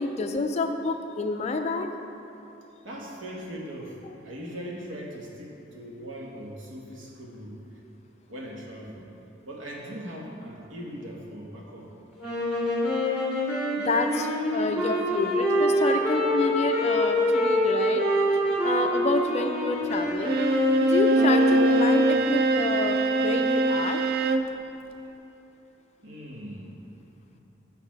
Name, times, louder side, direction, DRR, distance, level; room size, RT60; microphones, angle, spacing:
voice 1, 0.0-1.9 13.8-18.0 18.6-20.4 20.8-24.0, left 3 dB, 35° left, 6 dB, 0.3 m, -29 dB
voice 2, 2.8-4.0 4.2-7.6 8.3-9.1 9.5-11.9 22.0-22.3 26.0-26.7 27.3-27.4, equal, 75° right, -2 dB, 1.2 m, -40 dB
sound 1, 12.2-22.2, equal, 5° right, 1.6 m, -26 dB
Bowed string instrument, 20.2-24.5, right 2 dB, 50° right, 0.3 m, -22 dB
6.4 x 5.7 x 4.6 m, 2.9 s
head